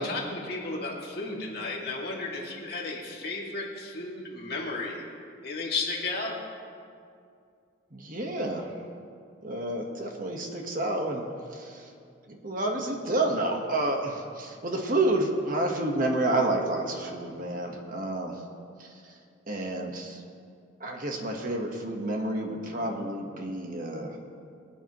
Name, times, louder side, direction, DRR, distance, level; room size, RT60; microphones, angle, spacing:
voice 1, 0.0-5.1 5.4-6.4, left 3 dB, 50° left, -3 dB, 2.3 m, -33 dB
voice 2, 7.9-8.7 9.4-11.2 11.5-11.9 12.3-18.4 18.8-18.9 19.5-20.2 20.8-24.2, right 2 dB, 45° right, 2 dB, 1.3 m, -29 dB
23.5 x 8.9 x 3.1 m, 2.4 s
head